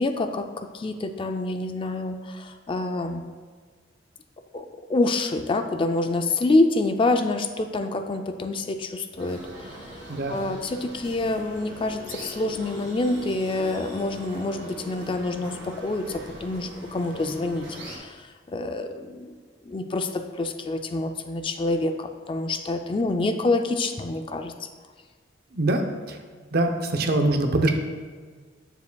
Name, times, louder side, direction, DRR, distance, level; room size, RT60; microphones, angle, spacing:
voice 1, 0.0-3.2 4.5-19.4 19.6-24.7, left 2 dB, 30° left, 7 dB, 0.3 m, -27 dB
sound 1, 9.2-18.0, equal, 75° right, 1.9 m, -41 dB
voice 2, 25.5-26.2 26.5-27.7, right 2 dB, 55° right, 5 dB, 0.7 m, -23 dB
9.4 x 6.9 x 2.3 m, 1.5 s
head